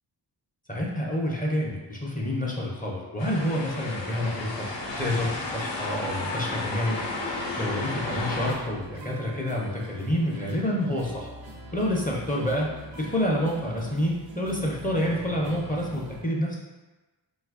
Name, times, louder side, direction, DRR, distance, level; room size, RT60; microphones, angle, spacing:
voice 1, 0.7-4.7 5.0-7.0 7.6-11.3 11.7-12.7 13.0-16.6, left 1 dB, 20° left, -3 dB, 0.6 m, -28 dB
sound 1, 3.2-8.5, left 2 dB, 80° left, 0.7 m, -32 dB
sound 2, 8.1-16.2, right 3 dB, 85° right, 0.6 m, -43 dB
2.8 x 2.4 x 3.5 m, 1.2 s
cardioid pair, 55°, 44 cm